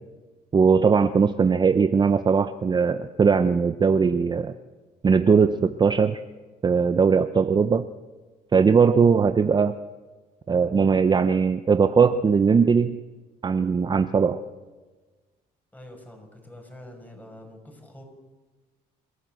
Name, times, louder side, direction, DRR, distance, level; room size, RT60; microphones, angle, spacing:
voice 1, 0.5-4.5 5.0-6.2 6.6-7.8 8.5-9.7 10.5-13.0 13.4-14.4, right 5 dB, 25° right, 11 dB, 0.7 m, -20 dB
voice 2, 15.7-18.0, left 1 dB, 10° left, 3 dB, 6.0 m, -45 dB
28.0 x 14.0 x 7.7 m, 1.3 s
cardioid pair, 110°, 17 cm